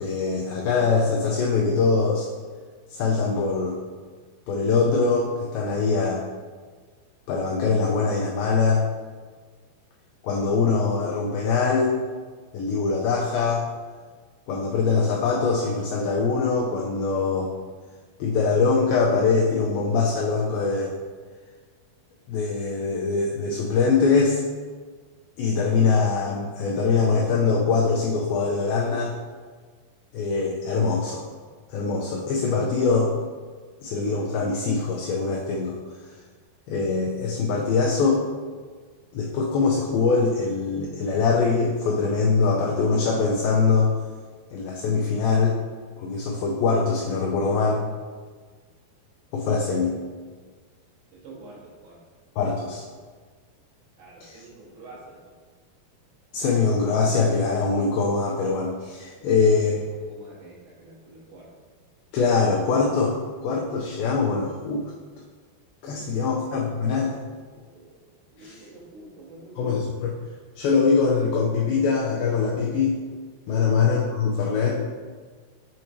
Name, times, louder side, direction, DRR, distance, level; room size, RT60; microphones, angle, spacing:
voice 1, 0.0-2.3 2.9-3.8 4.5-6.2 7.3-8.8 10.2-11.9 12.5-13.7 14.5-17.5 18.2-20.9 22.3-24.4 25.4-29.1 30.1-31.2 31.7-33.1 33.8-35.8 36.7-38.2 39.1-43.9 44.5-45.6 46.0-47.9 49.3-50.0 52.4-52.8 54.2-54.4 56.3-59.8 62.1-63.2 63.4-64.8 65.8-67.2 68.4-68.6 69.6-70.1 70.6-73.0 73.5-74.8, left 4 dB, 90° left, -3 dB, 2.1 m, -23 dB
voice 2, 51.1-52.1 54.0-55.3 59.2-59.5 60.1-61.5 65.8-66.4 67.5-68.0 68.3-69.8 73.5-73.7, right 2 dB, 75° right, -7 dB, 3.0 m, -46 dB
7.0 x 2.9 x 2.6 m, 1.5 s
omnidirectional pair, 4.7 m